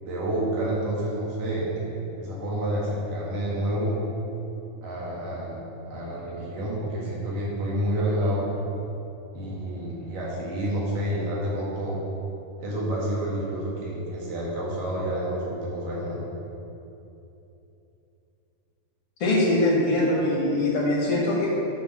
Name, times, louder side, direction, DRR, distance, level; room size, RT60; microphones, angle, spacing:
voice 1, 0.0-4.0 4.8-8.5 9.3-12.0 12.6-16.2, right 1 dB, 60° right, -6 dB, 3.0 m, -29 dB
voice 2, 19.2-21.5, left 1 dB, 50° left, -4 dB, 1.9 m, -22 dB
7.9 x 7.1 x 6.2 m, 2.9 s
omnidirectional pair, 4.8 m